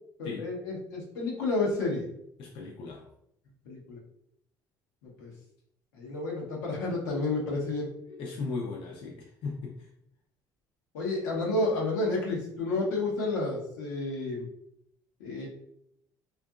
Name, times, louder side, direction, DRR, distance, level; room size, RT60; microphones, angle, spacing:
voice 1, 0.2-2.1 3.7-4.0 5.0-5.3 6.0-7.9 10.9-14.5 15.2-15.5, left 2 dB, 90° left, -3 dB, 0.9 m, -30 dB
voice 2, 2.4-3.0 8.1-9.7, left 4 dB, 65° left, -1 dB, 0.5 m, -37 dB
2.7 x 2.5 x 2.3 m, 0.75 s
hypercardioid pair, 70°, 10 cm